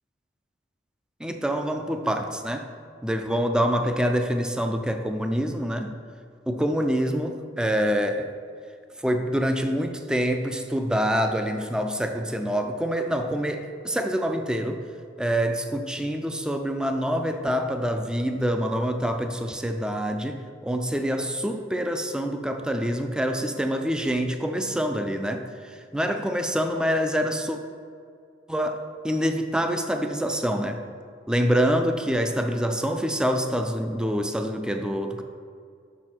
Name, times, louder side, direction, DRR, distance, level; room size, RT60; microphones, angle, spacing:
voice 1, 1.2-2.7 3.0-5.9 6.5-8.3 9.0-14.8 15.2-27.6 28.5-30.8 31.3-35.2, equal, 5° right, 6 dB, 0.3 m, -26 dB
6.2 x 5.7 x 4.4 m, 2.2 s
head